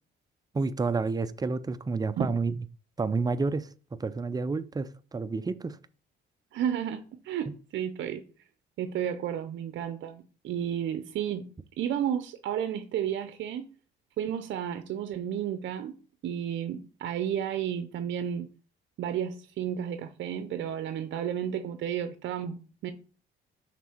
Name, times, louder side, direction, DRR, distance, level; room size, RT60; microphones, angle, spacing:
voice 1, 0.5-2.5 3.0-5.8 7.5-7.6, right 4 dB, 20° right, 0.4 m, -30 dB
voice 2, 6.5-8.2 8.8-11.5 11.8-13.7 14.2-16.0 16.2-18.5 19.0-22.9, right 9 dB, 70° right, 0.6 m, -32 dB
6.0 x 3.9 x 4.4 m
cardioid pair, 90°, 20 cm